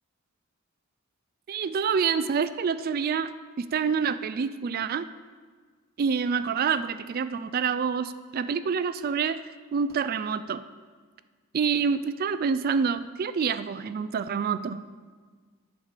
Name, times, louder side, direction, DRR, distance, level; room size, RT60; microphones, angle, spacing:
voice 1, 1.5-3.3 3.6-5.1 6.0-9.4 9.7-10.6 11.5-14.8, right 6 dB, 45° right, 13 dB, 0.3 m, -27 dB
10.0 x 5.0 x 6.6 m, 1.5 s
head